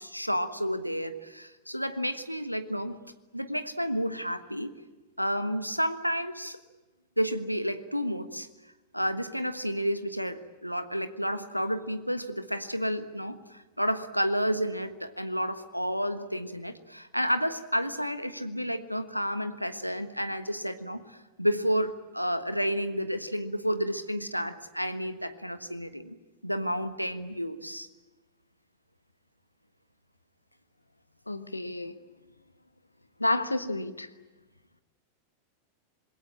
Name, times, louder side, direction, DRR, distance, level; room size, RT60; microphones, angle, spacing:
voice 1, 0.0-3.0 3.3-4.7 5.2-6.6 7.2-8.5 8.9-26.1 26.4-27.9, equal, 90° right, 11 dB, 1.3 m, -31 dB
voice 2, 31.3-31.9 33.2-34.1, left 2 dB, 85° left, 12 dB, 1.2 m, -30 dB
26.5 x 22.0 x 8.7 m, 1.1 s
figure-of-eight pair, 90°, 0 cm